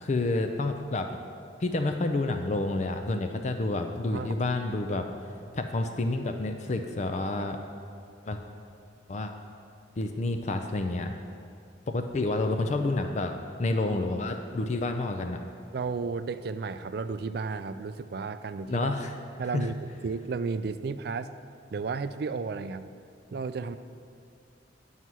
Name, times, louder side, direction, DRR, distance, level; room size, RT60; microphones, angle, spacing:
voice 1, 0.0-1.1 1.6-5.1 5.5-7.6 8.3-8.4 9.1-9.3 10.0-11.1 11.9-15.4 18.7-19.1 19.5-19.7, left 2 dB, 40° left, 6 dB, 0.4 m, -29 dB
voice 2, 15.7-18.9 19.4-21.3 21.7-22.9 23.3-23.8, right 4 dB, 55° right, 12 dB, 0.4 m, -33 dB
9.4 x 5.6 x 6.1 m, 2.4 s
head